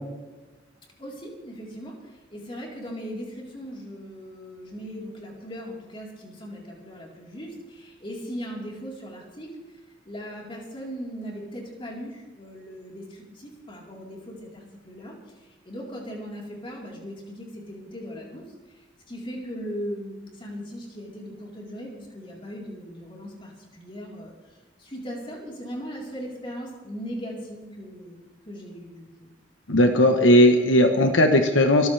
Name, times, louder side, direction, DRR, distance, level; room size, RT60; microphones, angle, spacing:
voice 1, 1.0-1.9 2.3-9.5 10.1-15.1 15.6-18.4 19.1-24.3 24.8-28.2 28.5-29.3, equal, 25° left, -3 dB, 4.1 m, -38 dB
voice 2, 29.7-31.9, left 1 dB, 75° left, 5 dB, 1.2 m, -17 dB
25.0 x 14.5 x 3.4 m, 1.2 s
head